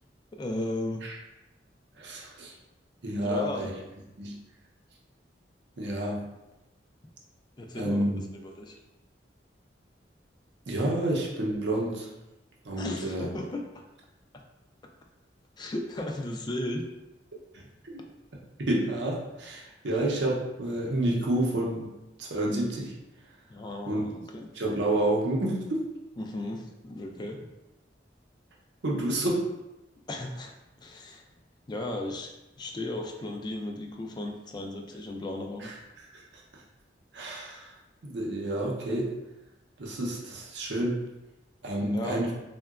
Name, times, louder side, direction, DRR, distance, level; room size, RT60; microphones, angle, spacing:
voice 1, 0.3-1.0 3.1-3.7 7.6-8.0 8.4-8.8 12.8-13.8 14.3-14.4 15.6-16.8 23.5-24.5 26.2-27.4 30.1-31.2 31.7-32.3 32.6-35.7 41.8-42.3, left 1 dB, 25° left, 2 dB, 0.3 m, -35 dB
voice 2, 2.0-2.5 3.0-3.7 4.2-4.4 5.8-6.3 7.7-8.2 10.7-12.1 12.6-13.3 17.5-17.9 18.7-21.9 22.2-22.9 23.9-24.0 24.5-25.9 28.8-29.5 35.6-35.7 36.1-36.2 37.1-37.7 38.0-39.2 39.8-41.0 41.6-42.3, right 1 dB, 70° right, -2 dB, 0.6 m, -29 dB
3.7 x 2.2 x 2.3 m, 0.97 s
head